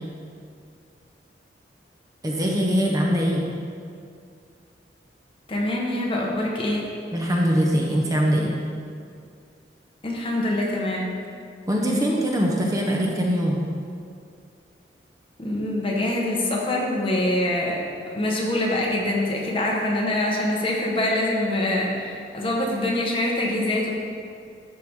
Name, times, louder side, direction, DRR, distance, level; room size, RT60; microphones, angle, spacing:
voice 1, 2.2-3.4 7.1-8.5 11.7-13.6, equal, 20° right, -1 dB, 0.7 m, -22 dB
voice 2, 5.5-6.9 10.0-11.1 15.4-17.8 18.1-23.9, left 1 dB, 30° left, -3 dB, 1.2 m, -24 dB
12.0 x 4.6 x 3.6 m, 2.3 s
head